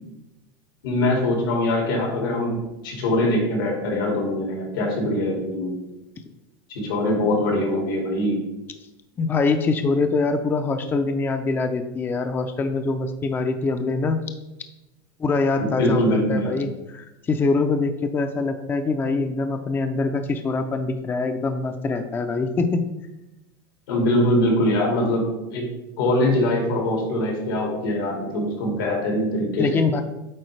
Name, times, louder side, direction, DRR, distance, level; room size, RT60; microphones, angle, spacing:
voice 1, 0.8-2.6 2.8-5.8 6.7-8.4 15.6-16.5 23.9-25.7 26.0-29.8, left 1 dB, 90° left, 0 dB, 2.3 m, -23 dB
voice 2, 9.2-14.2 15.2-22.9 29.6-30.0, left 3 dB, 20° left, 7 dB, 0.4 m, -24 dB
8.6 x 3.8 x 3.3 m, 0.96 s
supercardioid pair, 125°, 11 cm